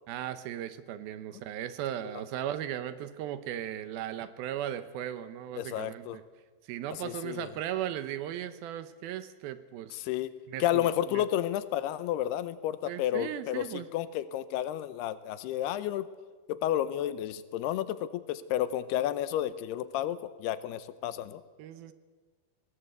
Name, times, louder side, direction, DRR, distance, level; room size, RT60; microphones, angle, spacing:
voice 1, 0.1-6.2 6.7-10.1 10.5-11.2 12.9-13.9 21.6-21.9, right 11 dB, 75° right, 12 dB, 2.6 m, -37 dB
voice 2, 5.6-6.2 7.0-7.5 9.9-10.3 10.6-16.1 16.5-21.4, left 12 dB, 90° left, 14 dB, 2.8 m, -31 dB
21.0 x 17.5 x 8.0 m, 1.4 s
omnidirectional pair, 4.6 m